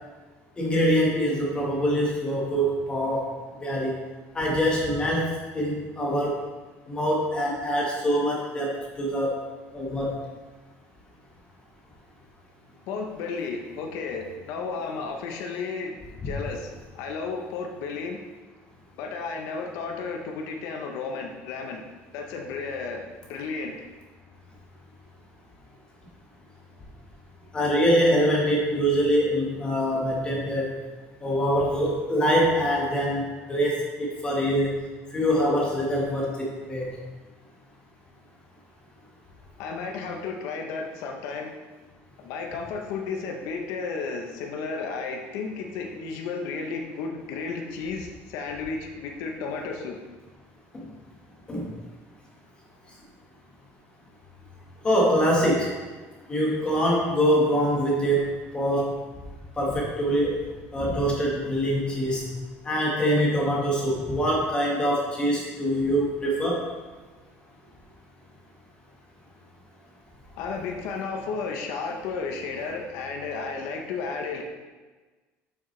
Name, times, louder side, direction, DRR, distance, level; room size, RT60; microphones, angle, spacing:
voice 1, 0.6-3.2 3.6-3.9 4.3-6.3 6.9-9.3 9.7-10.2 16.2-16.3 27.5-30.7 31.2-34.8 35.1-36.9 51.5-51.7 54.8-55.7 56.3-58.9 59.6-60.5 60.7-62.3 62.6-66.6, equal, 20° left, -3 dB, 1.4 m, -24 dB
voice 2, 12.9-18.2 19.0-21.8 22.1-23.7 39.6-41.5 42.2-50.0 70.4-74.4, left 4 dB, 70° left, 2 dB, 0.8 m, -33 dB
7.1 x 6.1 x 3.3 m, 1.3 s
cardioid pair, 160°, 5 cm